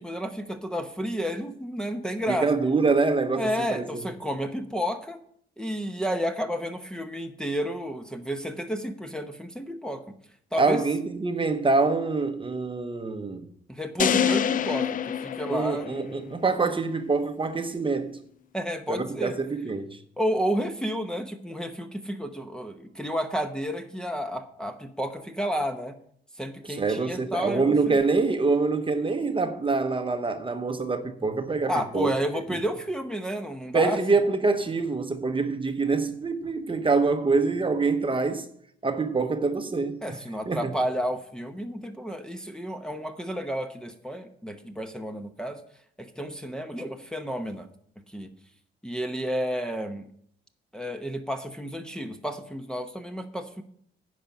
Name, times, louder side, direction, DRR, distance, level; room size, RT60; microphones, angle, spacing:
voice 1, 0.0-2.5 3.4-5.2 5.6-10.0 10.5-10.8 13.7-16.1 18.5-19.4 20.2-26.0 26.4-28.0 31.7-34.0 40.0-45.6 46.0-47.7 48.1-48.3 48.8-50.1 50.7-53.6, equal, 5° left, 0.9 m, -31 dB
voice 2, 2.3-4.0 10.6-13.5 15.5-18.2 18.9-20.0 26.7-32.1 32.5-32.6 33.7-38.4 38.8-40.2 40.5-40.7, right 4 dB, 25° right, 0.9 m, -25 dB
sound 1, 14.0-16.3, left 8 dB, 45° left, 0.4 m, -26 dB
10.0 x 5.3 x 7.2 m
cardioid pair, 90°, 20 cm